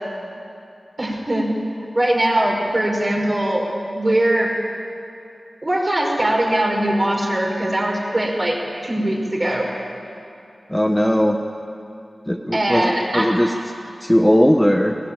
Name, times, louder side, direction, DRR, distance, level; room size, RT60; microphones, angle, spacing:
voice 1, 1.0-1.5 1.9-3.6 3.9-4.5 5.6-8.6 8.8-9.7 12.5-13.3, right 1 dB, 35° right, -1 dB, 5.2 m, -20 dB
voice 2, 10.7-11.4 12.3-13.5 14.0-15.0, equal, 5° left, 4 dB, 1.0 m, -18 dB
19.0 x 17.0 x 9.0 m, 2.6 s
wide cardioid pair, 60°, 0 cm